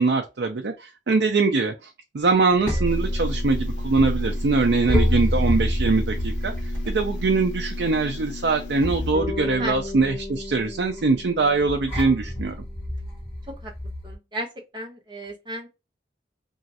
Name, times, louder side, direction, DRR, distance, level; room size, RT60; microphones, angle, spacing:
voice 1, 0.0-1.9 2.1-6.5 6.9-12.6, right 3 dB, 65° right, 0.4 m, -22 dB
sound 1, 2.3-14.1, equal, 15° left, 1.4 m, -28 dB
sound 2, 2.9-9.1, left 7 dB, 85° left, 0.7 m, -41 dB
Bass guitar, 9.1-13.3, left 3 dB, 70° left, 1.3 m, -37 dB
voice 2, 14.0-14.5 14.7-15.7, right 1 dB, 25° right, 0.8 m, -34 dB
3.0 x 2.4 x 2.7 m
head